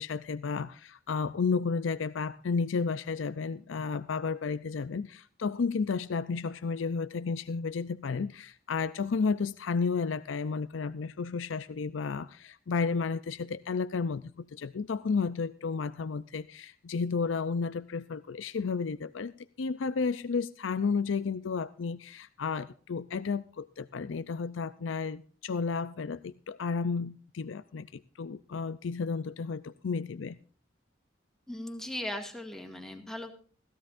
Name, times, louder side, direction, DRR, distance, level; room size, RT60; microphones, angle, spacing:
voice 1, 0.0-19.3 19.6-30.4, left 5 dB, 85° left, 0.5 m, -32 dB
voice 2, 31.5-33.3, left 1 dB, 5° left, 1.9 m, -38 dB
17.0 x 15.0 x 2.5 m
head